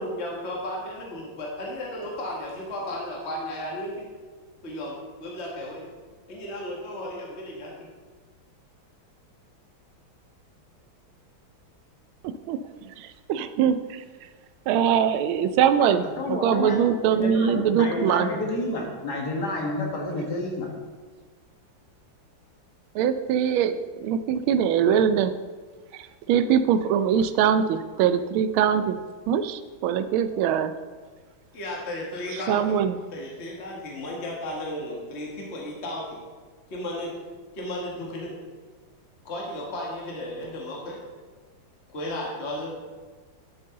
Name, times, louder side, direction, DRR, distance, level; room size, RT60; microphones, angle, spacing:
voice 1, 0.0-4.1 4.6-5.9 6.3-7.7 31.5-32.7 33.1-36.2 36.7-37.1 37.5-38.3 39.3-41.0 41.9-42.7, left 1 dB, 35° left, -2 dB, 1.8 m, -34 dB
voice 2, 12.2-14.0 14.7-18.3 22.9-25.3 25.9-29.0 29.3-30.8 32.5-33.0, right 8 dB, 90° right, 11 dB, 1.4 m, -23 dB
voice 3, 15.8-16.8 17.1-20.7, left 2 dB, 55° left, -1 dB, 2.2 m, -30 dB
11.5 x 7.7 x 3.8 m, 1.4 s
omnidirectional pair, 2.2 m